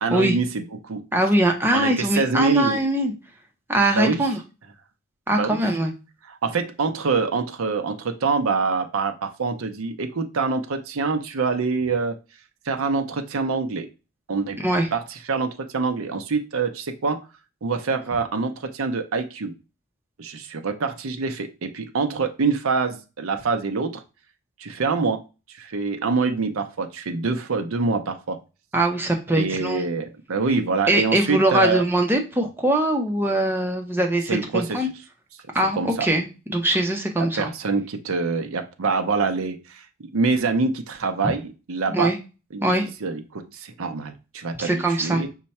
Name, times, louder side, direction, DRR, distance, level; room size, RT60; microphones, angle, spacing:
voice 1, 0.0-1.0 1.7-2.8 3.9-4.2 5.3-5.6 6.3-12.2 12.7-13.9 14.3-14.6 14.9-17.2 17.6-19.5 20.2-24.0 24.6-25.2 25.5-28.4 29.3-31.8 34.3-34.9 35.8-36.1 37.2-39.9 40.1-42.1 42.5-42.6 43.0-45.3, right 4 dB, 85° right, 6 dB, 0.6 m, -25 dB
voice 2, 1.1-3.1 3.7-4.4 5.3-5.9 14.6-14.9 28.7-29.8 30.9-34.9 35.5-37.5 41.9-42.2 42.6-42.8 44.6-45.2, right 1 dB, 10° right, 2 dB, 0.6 m, -22 dB
5.5 x 2.2 x 4.1 m, 0.30 s
head